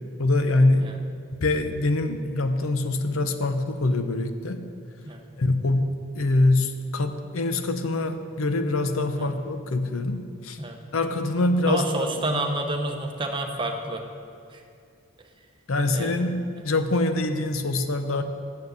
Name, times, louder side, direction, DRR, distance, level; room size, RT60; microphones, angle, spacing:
voice 1, 0.2-0.9 1.4-4.6 5.4-10.6 10.9-12.5 15.7-18.2, left 2 dB, 80° left, 8 dB, 0.7 m, -24 dB
voice 2, 11.7-14.0 14.5-14.6 15.9-16.2, right 2 dB, 25° right, 3 dB, 0.8 m, -29 dB
7.4 x 7.2 x 8.0 m, 2.3 s
head